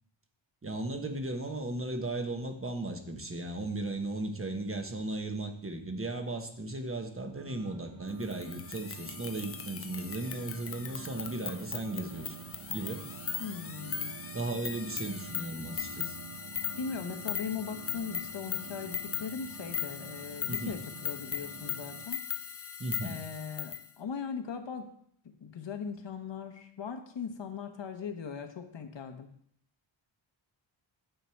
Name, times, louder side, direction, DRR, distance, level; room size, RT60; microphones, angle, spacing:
voice 1, 0.6-12.3 12.7-13.0 14.3-16.2 20.5-20.7 22.8-23.2, right 2 dB, 25° right, 5 dB, 1.2 m, -36 dB
sound 1, 7.3-22.1, right 9 dB, 45° right, 0.4 m, -48 dB
sound 2, 8.2-23.9, left 8 dB, 30° left, 0.5 m, -39 dB
voice 2, 13.4-14.1 16.8-22.2 23.0-24.9 25.4-29.3, left 6 dB, 65° left, 6 dB, 1.2 m, -39 dB
9.1 x 6.7 x 4.6 m, 0.67 s
wide cardioid pair, 110°, 48 cm